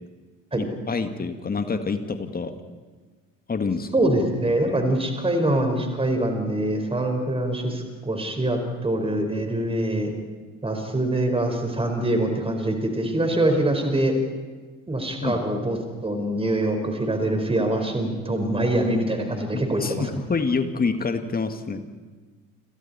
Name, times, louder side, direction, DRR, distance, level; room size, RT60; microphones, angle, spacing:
voice 1, 0.6-2.5 3.5-3.9 15.2-15.4 19.8-21.9, left 4 dB, 20° left, 8 dB, 2.1 m, -27 dB
voice 2, 3.9-10.1 10.6-14.1 14.9-15.8 16.0-20.1, right 1 dB, 15° right, 4 dB, 5.0 m, -24 dB
29.5 x 28.0 x 4.4 m, 1.4 s
figure-of-eight pair, 55°, 41 cm